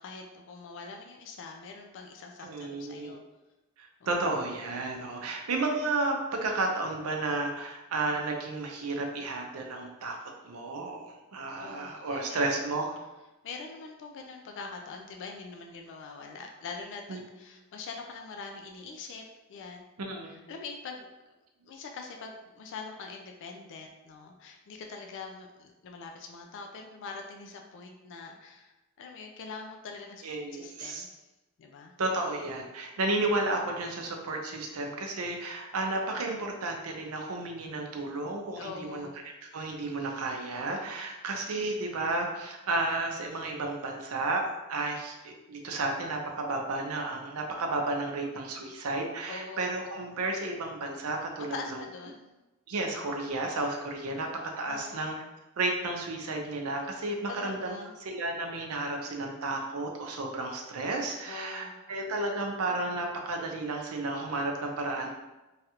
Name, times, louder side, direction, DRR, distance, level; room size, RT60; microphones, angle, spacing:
voice 1, 0.0-3.2 4.0-4.1 11.6-12.4 13.4-19.2 19.5-19.9 20.2-21.1 21.7-30.3 30.5-31.1 31.6-31.9 38.6-39.2 49.3-49.6 51.4-52.2 54.7-55.1 57.3-58.0 61.3-61.8, left 4 dB, 55° left, 3 dB, 0.3 m, -43 dB
voice 2, 2.4-3.2 3.8-10.2 10.4-13.0 17.1-17.2 20.0-20.4 30.2-31.1 32.0-39.1 39.5-51.8 52.7-54.3 54.6-55.1 55.6-57.7 58.0-65.2, right 2 dB, 75° right, 2 dB, 0.5 m, -32 dB
3.1 x 2.4 x 2.8 m, 1.1 s
head